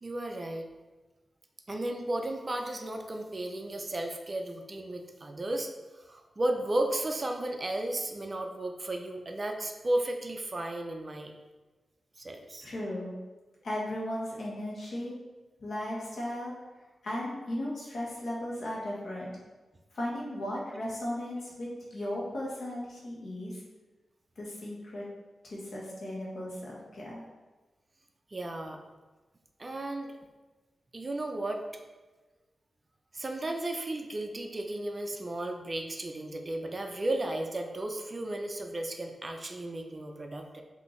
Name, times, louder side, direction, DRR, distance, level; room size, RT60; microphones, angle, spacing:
voice 1, 0.0-0.7 1.7-11.3 12.2-12.7 28.3-28.8 29.6-30.2 30.9-31.6 33.1-40.6, right 1 dB, 30° right, 3 dB, 0.4 m, -34 dB
voice 2, 12.6-13.1 13.6-15.2 15.6-16.5 17.0-19.3 19.9-23.6 24.4-25.0 25.4-27.2, left 1 dB, 70° left, -4 dB, 1.2 m, -36 dB
5.3 x 2.7 x 3.1 m, 1.2 s
wide cardioid pair, 110°, 0 cm